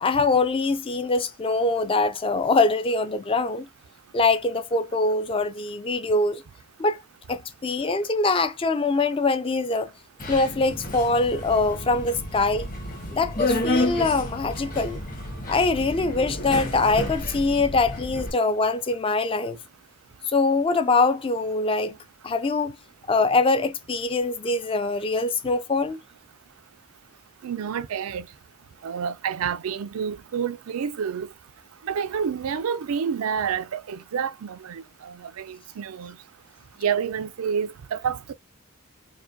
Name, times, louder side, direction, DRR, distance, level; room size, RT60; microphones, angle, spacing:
voice 1, 0.0-3.7 4.1-6.4 6.8-7.0 7.3-9.9 10.3-12.7 13.1-15.0 15.5-19.6 20.3-22.0 22.2-22.7 23.1-26.0, left 3 dB, 25° left, 0.4 m, -23 dB
Subway metro underground, 10.2-18.3, left 1 dB, 40° left, 1.4 m, -30 dB
voice 2, 27.4-28.3 28.8-31.3 31.8-36.2 36.8-38.3, right 7 dB, 85° right, 0.4 m, -29 dB
4.7 x 2.2 x 2.6 m
head